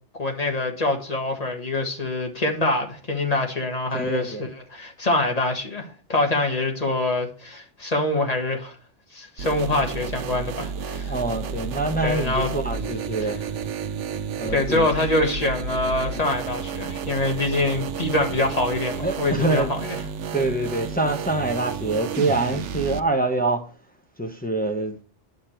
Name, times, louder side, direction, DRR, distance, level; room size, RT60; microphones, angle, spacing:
voice 1, 0.2-8.7 9.1-11.1 12.0-12.5 13.2-13.3 14.5-19.8, left 2 dB, 35° left, 1.7 m, -25 dB
voice 2, 3.9-4.4 11.0-13.4 14.3-14.9 19.0-19.7 20.3-23.7 24.2-25.0, right 2 dB, 10° left, 0.9 m, -25 dB
sound 1, 9.4-23.0, right 6 dB, 85° right, 1.0 m, -31 dB
9.4 x 6.6 x 4.5 m
omnidirectional pair, 1.2 m